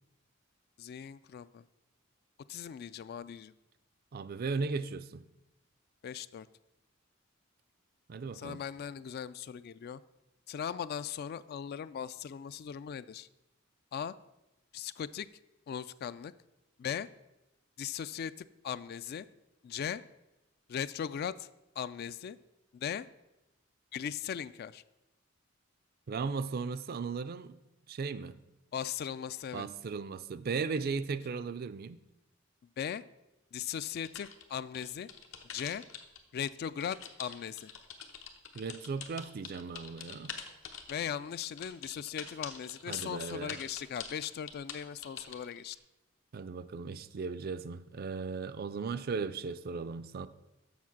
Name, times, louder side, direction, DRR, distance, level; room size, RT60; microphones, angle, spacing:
voice 1, 0.8-1.6 2.5-3.5 6.0-6.5 8.3-10.0 10.5-13.3 13.9-14.1 14.7-15.3 15.7-16.3 16.8-17.1 17.8-19.3 19.6-20.0 20.7-21.5 21.8-22.4 22.7-23.1 23.9-24.8 28.7-29.7 32.8-33.0 33.5-35.1 35.5-35.8 36.3-37.7 40.9-45.8, left 8 dB, 50° left, 16 dB, 0.3 m, -38 dB
voice 2, 4.1-5.2 8.1-8.6 26.1-27.6 27.9-28.4 29.5-32.0 38.5-40.3 42.9-43.6 46.3-50.3, right 4 dB, 50° right, 14 dB, 0.4 m, -36 dB
sound 1, 34.0-36.2 36.5-45.7, left 7 dB, 75° left, 0.9 m, -45 dB
7.3 x 6.3 x 5.9 m, 0.96 s
head